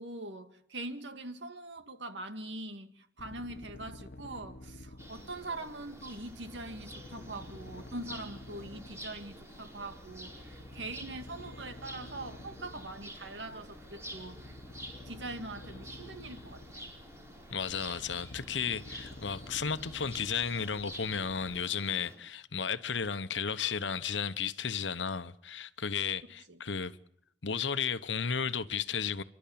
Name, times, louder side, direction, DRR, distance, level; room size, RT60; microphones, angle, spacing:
voice 1, 0.0-14.6 15.1-16.9 26.5-26.6, right 2 dB, 75° right, 2.1 m, -43 dB
sound 1, 3.2-21.6, left 1 dB, 55° left, 1.3 m, -50 dB
sound 2, 5.0-22.1, equal, 15° right, 5.0 m, -50 dB
voice 2, 17.5-27.0 27.4-29.2, left 6 dB, 85° left, 1.1 m, -34 dB
29.5 x 12.5 x 8.7 m
head